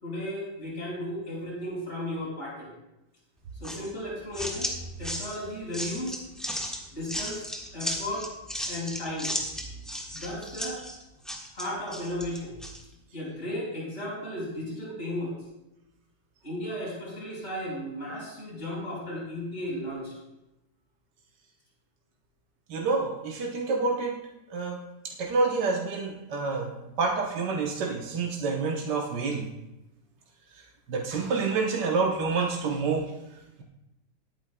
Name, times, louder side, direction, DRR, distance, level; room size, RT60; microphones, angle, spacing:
voice 1, 0.0-2.7 3.6-4.7 5.0-6.2 6.9-8.3 8.7-9.3 10.1-10.8 11.5-12.5 13.1-15.4 16.4-20.1, left 1 dB, 40° left, -5 dB, 4.8 m, -35 dB
sound 1, 3.6-12.8, equal, ahead, 1.2 m, -35 dB
voice 2, 22.7-24.1 24.5-24.8 25.0-26.7 27.0-29.5 30.9-33.1, right 4 dB, 85° right, 0 dB, 1.6 m, -28 dB
19.0 x 9.2 x 2.2 m, 0.94 s
omnidirectional pair, 1.8 m